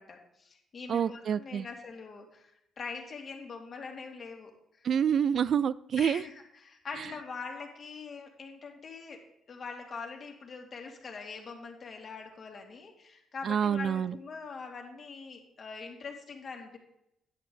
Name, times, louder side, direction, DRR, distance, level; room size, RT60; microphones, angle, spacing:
voice 1, 0.0-2.5 2.8-4.5 4.8-4.9 6.0-16.8, left 4 dB, 45° left, 2 dB, 2.1 m, -43 dB
voice 2, 0.9-1.7 4.8-6.2 13.4-14.1, right 8 dB, 60° right, 19 dB, 0.3 m, -27 dB
10.0 x 8.3 x 3.8 m, 0.79 s
cardioid pair, 90°, 0 cm